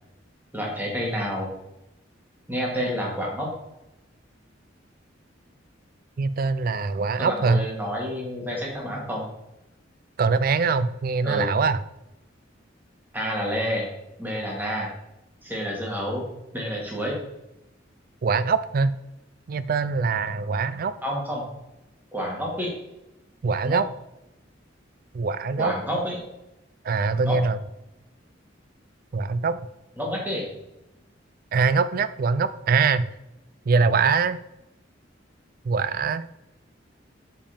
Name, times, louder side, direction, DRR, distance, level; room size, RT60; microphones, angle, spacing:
voice 1, 0.5-1.5 2.5-3.5 7.2-9.3 11.2-11.5 13.1-13.9 14.2-14.9 15.4-16.3 16.5-17.2 21.0-21.4 22.1-22.7 23.6-23.8 25.6-26.2 27.2-27.4 30.0-30.5, equal, 10° right, -2 dB, 2.0 m, -29 dB
voice 2, 6.2-7.6 10.2-11.8 18.2-18.9 19.5-20.9 23.4-23.9 25.1-25.7 26.8-27.6 29.1-29.6 31.5-33.1 33.7-34.4 35.7-36.3, right 4 dB, 50° right, 14 dB, 0.4 m, -23 dB
6.9 x 5.3 x 5.1 m, 0.92 s
head